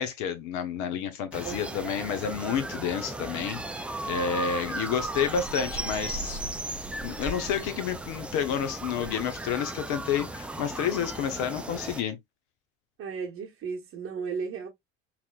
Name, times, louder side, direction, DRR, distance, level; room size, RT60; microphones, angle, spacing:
voice 1, 0.0-6.4 7.0-12.2, left 8 dB, 50° left, 0.8 m, -30 dB
sound 1, 1.3-12.0, right 2 dB, 5° right, 0.3 m, -36 dB
voice 2, 1.4-1.9 13.0-14.7, right 5 dB, 35° right, 1.0 m, -35 dB
5.7 x 2.6 x 2.3 m
figure-of-eight pair, 70°, 37 cm